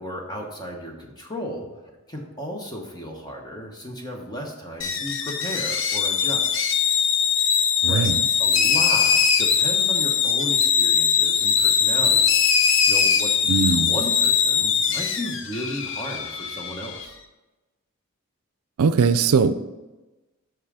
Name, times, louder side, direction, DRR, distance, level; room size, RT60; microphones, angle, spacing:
voice 1, 0.0-6.6 7.9-8.1 8.4-12.3 12.9-17.2, equal, 20° left, 1 dB, 1.0 m, -34 dB
sound 1, 4.8-17.1, left 6 dB, 55° left, 0.6 m, -21 dB
voice 2, 7.8-8.2 13.5-13.9 18.8-19.7, right 5 dB, 80° right, 11 dB, 0.4 m, -20 dB
6.2 x 5.6 x 4.9 m, 1.1 s
head